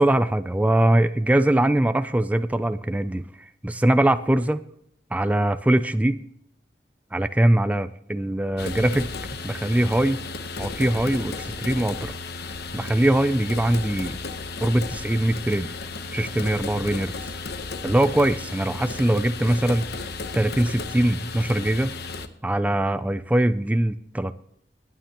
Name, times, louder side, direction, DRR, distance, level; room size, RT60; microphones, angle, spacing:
voice 1, 0.0-4.6 5.1-6.2 7.1-9.1 9.4-10.2 10.6-12.1 12.7-14.2 14.6-15.7 16.1-17.3 17.8-19.9 20.3-21.9 22.4-24.4, right 1 dB, 10° right, 11 dB, 0.4 m, -22 dB
sound 1, 8.6-22.3, left 3 dB, 65° left, 0.9 m, -34 dB
19.0 x 9.1 x 2.9 m, 0.71 s
head